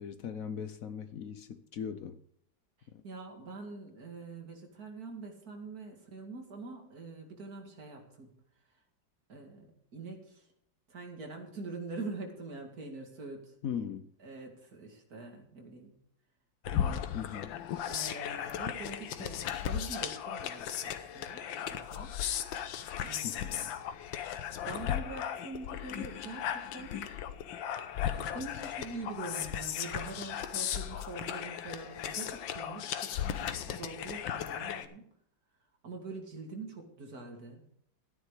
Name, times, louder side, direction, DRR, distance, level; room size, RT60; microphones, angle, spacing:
voice 1, 0.0-2.2 2.9-3.0 13.6-14.1 17.1-17.6 23.2-23.6, left 8 dB, 60° left, 1.0 m, -39 dB
voice 2, 2.8-8.3 9.3-10.5 10.9-13.5 14.2-15.9 16.7-17.1 17.9-22.1 23.0-23.7 24.7-27.0 28.3-35.1 35.8-37.6, right 3 dB, 50° right, 2.7 m, -44 dB
sound 1, 16.6-34.8, left 9 dB, 90° left, 1.6 m, -36 dB
13.0 x 10.0 x 4.9 m
omnidirectional pair, 2.0 m